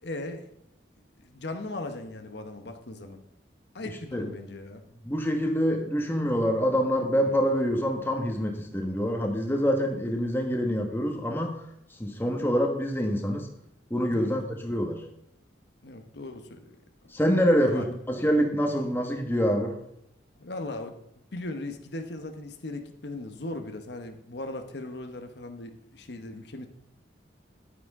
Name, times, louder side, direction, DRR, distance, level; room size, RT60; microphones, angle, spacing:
voice 1, 0.0-0.5 1.2-3.2 3.7-4.8 14.1-14.4 15.8-16.8 17.6-17.9 20.4-20.9 21.3-26.7, left 2 dB, 65° left, 6 dB, 1.0 m, -38 dB
voice 2, 5.0-11.6 12.0-13.5 13.9-15.0 17.1-19.8, equal, 10° left, 2 dB, 1.3 m, -26 dB
10.5 x 9.5 x 3.6 m, 0.78 s
head